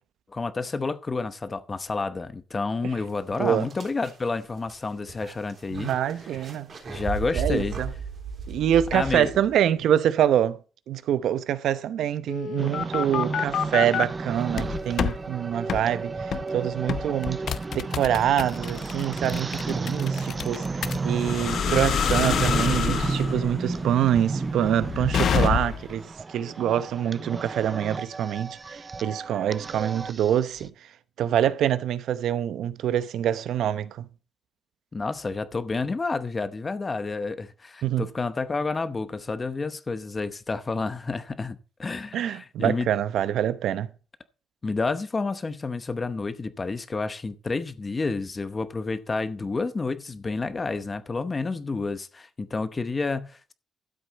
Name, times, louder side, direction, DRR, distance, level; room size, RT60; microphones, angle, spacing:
voice 1, 0.3-5.9 6.9-7.8 8.9-9.3 34.9-42.9 44.6-53.5, left 3 dB, 25° left, 0.8 m, -30 dB
sound 1, 2.8-2.9 3.3-9.7, right 4 dB, 40° right, 3.3 m, -36 dB
voice 2, 5.7-6.7 7.3-7.9 8.5-10.6 10.9-16.1 16.5-17.5 17.7-30.7 31.2-34.1 37.8-38.1 42.1-43.9, right 10 dB, 75° right, 0.8 m, -25 dB
sound 2, 12.3-14.1 14.5-15.2 15.7-15.9 16.3-16.5 16.9-25.9, left 8 dB, 55° left, 0.7 m, -27 dB
sound 3, 12.6-30.7, right 4 dB, 25° right, 0.4 m, -32 dB
12.5 x 7.9 x 4.1 m
cardioid pair, 140°, 0 cm